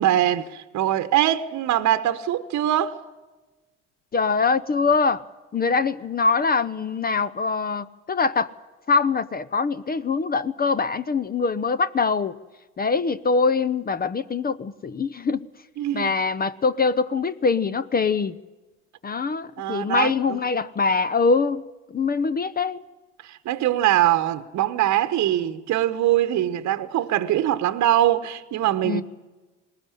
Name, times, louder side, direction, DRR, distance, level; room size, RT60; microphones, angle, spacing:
voice 1, 0.0-3.0 15.8-16.1 19.6-20.4 23.2-29.0, right 12 dB, 55° right, 1.1 m, -22 dB
voice 2, 4.1-5.2 5.5-8.5 8.9-12.3 12.8-15.4 15.9-18.3 19.0-21.6 21.9-22.8 28.8-29.0, left 4 dB, 25° left, 0.8 m, -23 dB
20.5 x 18.5 x 9.9 m
hypercardioid pair, 70°, 34 cm